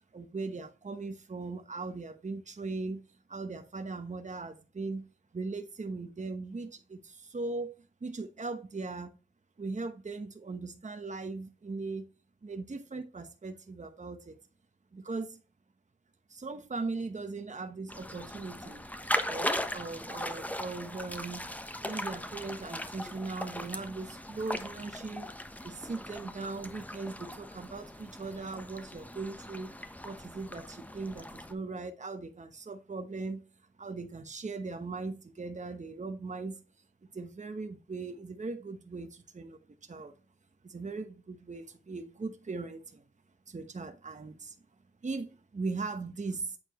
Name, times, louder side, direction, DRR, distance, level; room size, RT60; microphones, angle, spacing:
voice 1, 0.1-3.0 3.3-5.1 5.3-7.7 8.0-9.2 9.6-12.1 12.4-14.4 14.9-15.4 16.3-18.9 19.3-21.5 21.8-25.3 25.6-29.7 30.0-33.4 33.8-36.6 37.1-40.1 40.6-43.0 43.5-44.6 45.0-46.6, right 3 dB, 40° right, 1.0 m, -39 dB
sound 1, 17.9-31.5, left 1 dB, 10° left, 1.0 m, -39 dB
8.7 x 4.4 x 3.0 m
cardioid pair, 45°, 19 cm